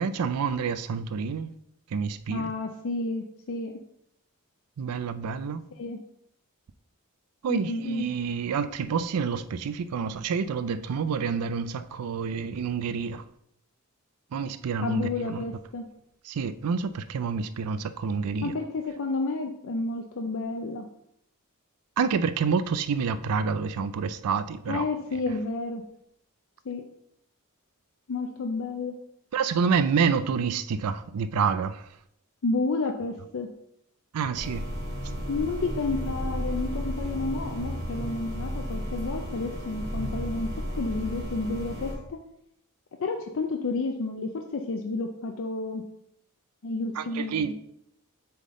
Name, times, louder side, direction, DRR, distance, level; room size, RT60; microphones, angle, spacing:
voice 1, 0.0-1.5 1.9-2.5 4.8-5.6 7.4-13.2 14.3-15.4 16.3-18.5 22.0-24.8 29.3-31.8 34.1-34.6 47.0-47.5, right 6 dB, 90° right, 0.4 m, -28 dB
voice 2, 2.3-3.7 5.8-6.0 7.5-8.0 14.8-15.8 18.4-20.9 24.7-25.8 26.7-26.8 28.1-29.0 32.4-33.5 35.3-42.2 43.0-45.8 46.6-47.5, left 3 dB, 60° left, 0.5 m, -31 dB
sound 1, 34.3-41.9, equal, 65° right, 1.8 m, -33 dB
7.6 x 3.6 x 3.7 m
head